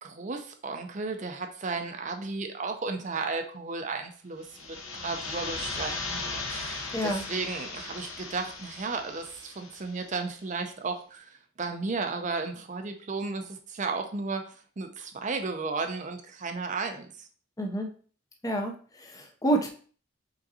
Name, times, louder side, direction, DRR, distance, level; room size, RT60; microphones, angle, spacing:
voice 1, 0.0-11.3 11.6-17.3, right 4 dB, 35° right, 6 dB, 0.5 m, -34 dB
sound 1, 4.4-10.1, left 3 dB, 80° left, 0.9 m, -37 dB
voice 2, 6.9-7.3 17.6-17.9 18.4-19.7, right 1 dB, 15° left, 3 dB, 0.5 m, -28 dB
5.1 x 3.8 x 2.7 m, 0.43 s
head